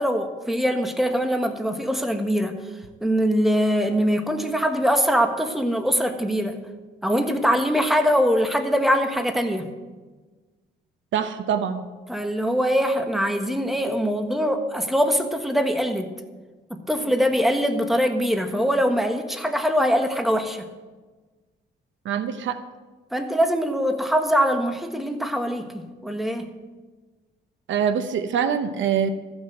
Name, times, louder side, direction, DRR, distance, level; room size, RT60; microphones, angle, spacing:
voice 1, 0.0-2.6 3.0-6.6 7.0-9.7 12.1-16.1 16.7-20.7 23.1-26.5, equal, ahead, 5 dB, 1.4 m, -23 dB
voice 2, 11.1-11.8 22.0-22.6 27.7-29.1, right 8 dB, 70° right, 10 dB, 0.9 m, -24 dB
14.5 x 6.3 x 7.8 m, 1.3 s
cardioid pair, 90°, 20 cm